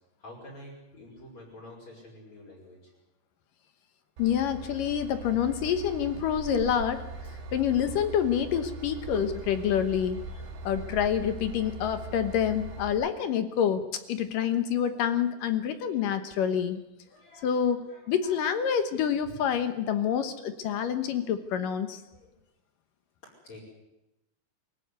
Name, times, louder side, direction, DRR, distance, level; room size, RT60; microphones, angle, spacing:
voice 1, 0.2-3.0 5.6-5.7 9.0-9.8 10.3-10.4 10.6-11.0 11.7-12.0 13.7-13.8 14.4-14.6 16.0-16.4 17.1-18.8 19.2-19.3 22.1-22.4 23.2-23.6, equal, 40° left, -3 dB, 6.5 m, -48 dB
voice 2, 4.2-7.1 7.5-10.2 10.6-13.8 14.1-16.8 17.4-22.0, left 8 dB, 70° left, 9 dB, 2.5 m, -27 dB
Train / Engine, 4.2-12.9, right 3 dB, 80° right, 4.3 m, -41 dB
23.5 x 16.0 x 9.6 m, 0.92 s
omnidirectional pair, 4.7 m